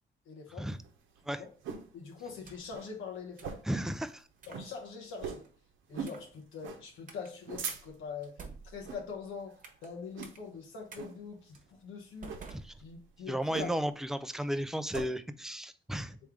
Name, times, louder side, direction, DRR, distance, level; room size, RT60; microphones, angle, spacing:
voice 1, 0.3-0.7 1.3-1.5 1.9-3.5 4.5-5.4 5.9-8.4 8.7-12.3 12.8-13.7, left 5 dB, 80° left, 0 dB, 1.1 m, -43 dB
sound 1, 0.7-1.9 2.3-2.4 2.7-2.9 3.4-3.8 4.1-4.2 4.5-4.7 5.2-5.5 5.9-6.2 6.6-6.8 7.3-8.1 8.8-9.1 9.5-9.7 10.1-10.6 11.0-11.2 12.2-12.5 13.5-14.0 14.3-15.1, right 6 dB, 80° right, 0.8 m, -41 dB
sound 2, 2.2-2.8 3.4-3.7 4.4-4.7 5.2-5.5 6.0-6.4 7.1-7.3 7.7-7.8 8.2-9.9 10.2-10.4 10.9-11.0 11.5-11.7 12.2-13.3, right 4 dB, 40° right, 1.1 m, -51 dB
voice 2, 3.6-4.3 12.5-12.7 13.3-16.2, equal, ahead, 12 dB, 0.3 m, -34 dB
3.6 x 3.2 x 4.7 m, 0.42 s
cardioid pair, 90°, 20 cm